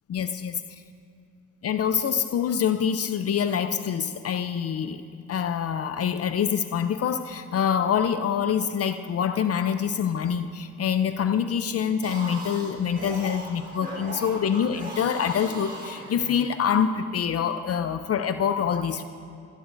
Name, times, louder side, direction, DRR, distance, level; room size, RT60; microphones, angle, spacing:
voice 1, 0.1-0.6 1.6-5.0 5.3-19.0, left 8 dB, 50° left, 10 dB, 0.6 m, -25 dB
sound 1, 11.9-16.6, right 1 dB, 30° right, 3.7 m, -38 dB
20.5 x 16.0 x 2.6 m, 2.5 s
cardioid pair, 95°, 31 cm